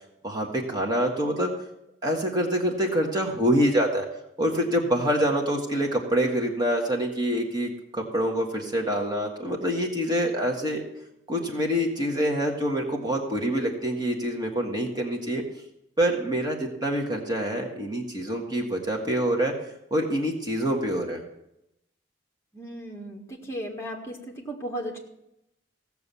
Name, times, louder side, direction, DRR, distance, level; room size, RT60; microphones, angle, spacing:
voice 1, 0.2-1.5 2.0-4.0 4.4-10.8 11.3-15.4 16.0-19.5 19.9-21.2, equal, 20° right, 0 dB, 1.6 m, -26 dB
voice 2, 22.5-24.2 24.5-25.0, equal, 15° left, -1 dB, 1.8 m, -35 dB
16.0 x 6.9 x 7.0 m, 0.83 s
head